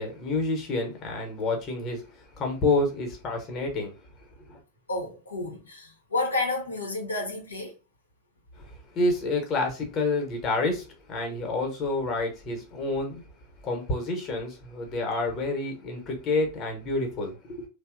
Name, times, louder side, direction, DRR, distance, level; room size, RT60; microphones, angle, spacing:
voice 1, 0.0-2.1 2.4-3.9 4.5-4.6 8.6-13.2 13.6-17.7, left 2 dB, 30° left, 0.8 m, -28 dB
voice 2, 4.9-7.7, left 2 dB, 75° left, 0.6 m, -30 dB
2.8 x 2.0 x 2.4 m
figure-of-eight pair, 90°, 0 cm